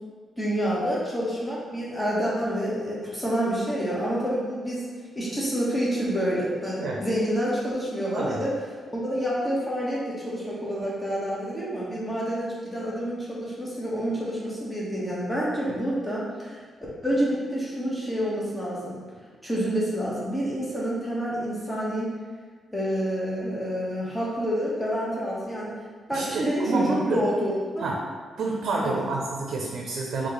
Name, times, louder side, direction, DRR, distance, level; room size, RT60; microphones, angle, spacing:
voice 1, 0.4-4.9 5.1-8.6 8.9-16.6 17.0-19.0 19.4-22.1 22.7-25.7 26.1-27.9 28.8-29.0, equal, 10° left, -6 dB, 1.2 m, -28 dB
voice 2, 8.1-8.4 26.1-27.2 27.8-28.0 28.4-30.3, right 3 dB, 70° right, -1 dB, 0.6 m, -29 dB
4.1 x 2.9 x 4.0 m, 1.6 s
cardioid pair, 135°, 0 cm